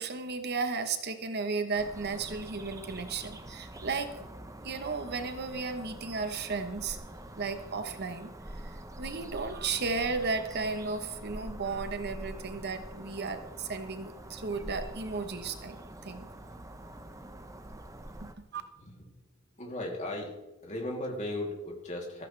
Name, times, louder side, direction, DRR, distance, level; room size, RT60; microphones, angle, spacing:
voice 1, 0.0-4.1 4.6-7.0 7.4-8.3 8.6-15.8 16.0-16.3 18.5-18.6, right 4 dB, 55° right, 8 dB, 1.0 m, -34 dB
sound 1, 1.7-18.3, right 1 dB, 15° right, 0.8 m, -45 dB
voice 2, 19.6-20.4 20.6-22.2, left 1 dB, 35° left, -1 dB, 2.9 m, -36 dB
14.5 x 14.0 x 3.3 m, 1.0 s
head